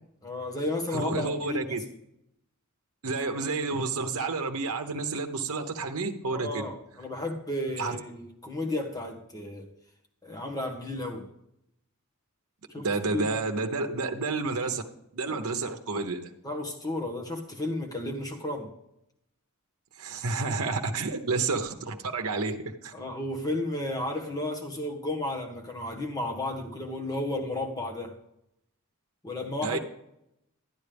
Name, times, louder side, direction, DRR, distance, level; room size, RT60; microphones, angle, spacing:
voice 1, 0.2-1.8 6.3-9.7 10.2-11.3 12.7-13.4 16.4-18.7 22.9-28.1 29.2-29.8, left 1 dB, 15° left, 1 dB, 1.4 m, -33 dB
voice 2, 0.9-1.8 3.0-6.7 7.8-8.0 12.8-14.8 15.1-16.3 20.0-22.6 22.8-22.9 29.6-29.8, right 3 dB, 80° right, 5 dB, 0.9 m, -30 dB
12.0 x 9.6 x 3.5 m, 0.79 s
head